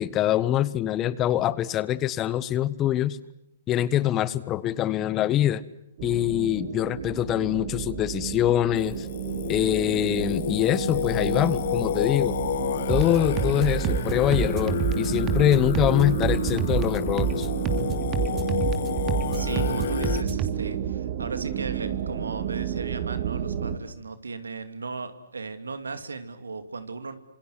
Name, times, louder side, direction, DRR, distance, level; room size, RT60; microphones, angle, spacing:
voice 1, 0.0-3.2 3.7-5.6 6.0-9.1 9.5-12.4 12.9-17.5, left 12 dB, 25° left, 18 dB, 1.2 m, -24 dB
sound 1, 6.0-23.8, right 9 dB, 45° right, 2.5 m, -31 dB
Singing, 8.8-20.2, left 10 dB, 60° left, 1.0 m, -30 dB
sound 2, 12.9-20.5, right 7 dB, 25° right, 2.9 m, -28 dB
voice 2, 19.3-27.2, right 4 dB, 85° right, 10 dB, 2.7 m, -36 dB
27.5 x 26.5 x 8.1 m, 0.82 s
hypercardioid pair, 125°, 0 cm